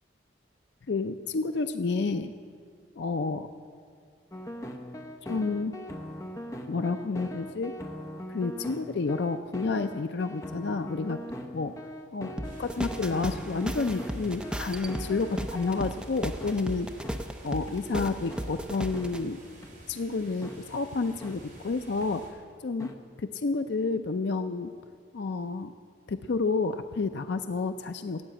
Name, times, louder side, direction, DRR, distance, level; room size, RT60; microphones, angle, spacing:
voice 1, 0.9-2.3 3.0-3.5 5.2-5.7 6.7-7.7 8.3-11.2 11.5-11.7 12.1-12.3 12.6-16.9 17.4-19.4 19.9-22.2 22.6-22.9 23.2-24.7 25.1-25.7 26.1-28.3, left 4 dB, 65° left, 9 dB, 0.5 m, -30 dB
sound 1, 4.3-15.9 16.4-16.5 17.0-17.2 17.7-17.8 18.3-18.4 18.9-19.1 19.6-19.7 20.4-20.6 21.2-21.3 22.0-22.1 22.8-22.9, left 1 dB, 15° left, 0.9 m, -40 dB
sound 2, 12.4-19.2, equal, 5° right, 0.5 m, -35 dB
sound 3, 12.4-22.3, right 1 dB, 45° right, 4.3 m, -51 dB
16.5 x 8.4 x 8.9 m, 2.2 s
head